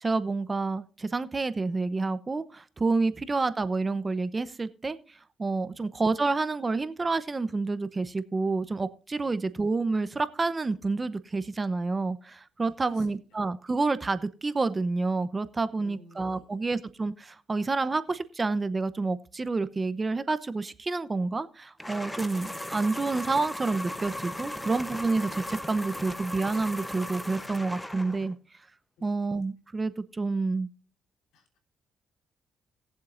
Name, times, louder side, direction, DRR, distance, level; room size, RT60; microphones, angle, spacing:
voice 1, 0.0-5.0 5.4-28.4 29.0-30.7, right 3 dB, 25° right, 0.8 m, -29 dB
voice 2, 12.8-13.2 15.7-16.7 29.0-29.2 31.3-31.6, left 3 dB, 90° left, 3.5 m, -54 dB
sound 1, 21.8-28.3, left 1 dB, 10° left, 0.9 m, -37 dB
20.0 x 7.5 x 2.5 m
cardioid pair, 90°, 0 cm